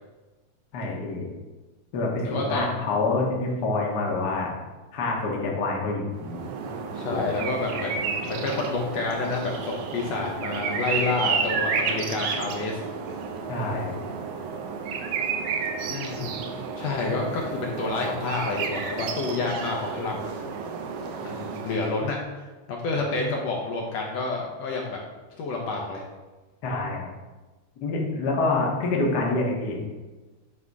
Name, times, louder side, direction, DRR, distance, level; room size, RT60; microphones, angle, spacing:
voice 1, 0.7-1.2 1.9-4.5 4.9-6.4 7.1-7.5 7.8-7.9 13.5-14.0 16.3-16.4 26.6-27.1 27.8-29.8, left 3 dB, 50° left, -1 dB, 1.3 m, -27 dB
voice 2, 2.2-2.8 6.9-12.8 15.9-16.3 16.8-20.5 21.2-25.0 25.4-26.0, left 3 dB, 70° left, 0 dB, 1.8 m, -29 dB
sound 1, 6.1-22.1, right 5 dB, 85° right, 2.0 m, -31 dB
9.7 x 3.5 x 4.7 m, 1.2 s
omnidirectional pair, 3.3 m